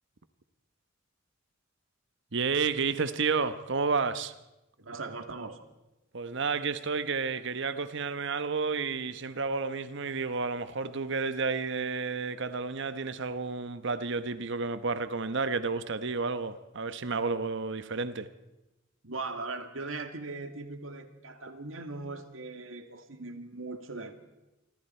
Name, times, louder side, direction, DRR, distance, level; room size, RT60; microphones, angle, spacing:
voice 1, 2.3-4.3 6.1-18.3, right 4 dB, 65° right, 1.0 m, -31 dB
voice 2, 4.8-5.6 19.0-24.1, right 3 dB, 85° right, 2.2 m, -39 dB
27.0 x 25.5 x 4.4 m
head